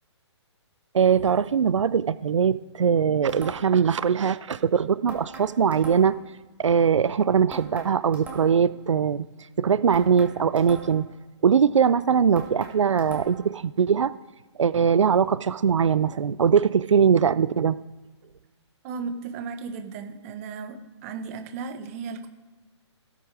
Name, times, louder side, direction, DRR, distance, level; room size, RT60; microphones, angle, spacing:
voice 1, 0.9-6.2 6.6-9.3 9.6-11.1 11.4-14.1 14.6-17.8, right 7 dB, 85° right, 16 dB, 0.5 m, -21 dB
sound 1, 3.3-3.9 5.1-6.3 7.5-8.7 9.9-11.2 12.4-13.6, right 4 dB, 10° right, 2.0 m, -41 dB
voice 2, 18.8-22.3, right 5 dB, 30° right, 8 dB, 1.3 m, -35 dB
16.0 x 8.5 x 4.9 m, 1.2 s
hypercardioid pair, 155°, 15 cm